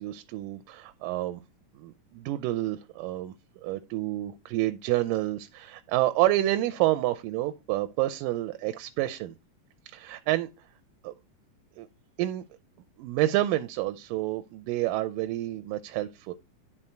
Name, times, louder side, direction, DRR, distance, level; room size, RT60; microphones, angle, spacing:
voice 1, 0.0-1.4 1.8-3.3 3.6-9.3 9.9-10.5 11.0-11.1 11.8-11.9 12.2-12.4 13.0-16.3, right 15 dB, 90° right, 2.2 m, -29 dB
11.0 x 3.9 x 4.4 m
omnidirectional pair, 3.8 m